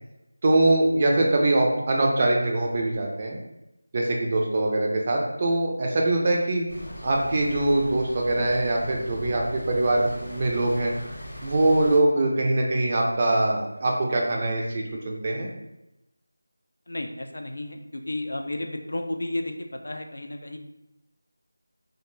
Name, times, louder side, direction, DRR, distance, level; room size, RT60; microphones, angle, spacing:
voice 1, 0.4-3.4 3.9-6.6 7.0-10.9 11.4-15.5, right 2 dB, 25° right, -1 dB, 0.4 m, -23 dB
sound 1, 6.7-12.0, equal, 30° left, 0.8 m, -40 dB
voice 2, 16.9-19.5 19.8-20.6, left 1 dB, 70° left, 4 dB, 0.4 m, -32 dB
2.3 x 2.2 x 3.0 m, 0.92 s
figure-of-eight pair, 175°, 0 cm